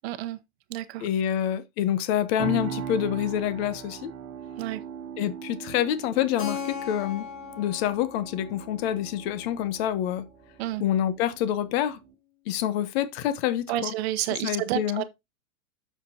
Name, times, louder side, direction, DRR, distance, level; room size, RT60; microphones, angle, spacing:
voice 1, 0.0-0.4 0.7-1.0 4.6-4.8 10.6-10.8 13.7-15.0, right 14 dB, 50° right, 0.9 m, -30 dB
voice 2, 1.0-4.1 5.2-7.3 7.6-10.3 10.8-12.0 12.5-13.9 14.4-15.0, left 11 dB, 50° left, 1.0 m, -27 dB
sound 1, 2.4-12.1, right 8 dB, 35° right, 1.5 m, -40 dB
Keyboard (musical), 6.4-10.9, left 6 dB, 75° left, 2.7 m, -40 dB
8.6 x 6.9 x 2.8 m
supercardioid pair, 150°, 40 cm